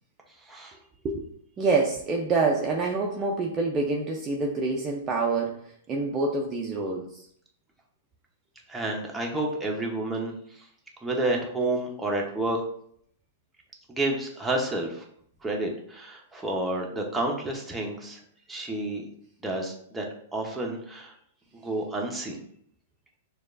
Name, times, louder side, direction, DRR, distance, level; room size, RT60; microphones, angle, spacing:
voice 1, 0.4-0.8 8.7-10.6 11.0-12.6 13.9-15.0 15.4-18.2 18.5-19.0 19.4-20.1 20.3-21.1 21.5-22.4, right 2 dB, 5° right, -1 dB, 0.9 m, -30 dB
voice 2, 1.6-7.3, right 3 dB, 25° right, 0 dB, 0.5 m, -27 dB
6.3 x 2.4 x 2.5 m, 0.67 s
hypercardioid pair, 115°, 0 cm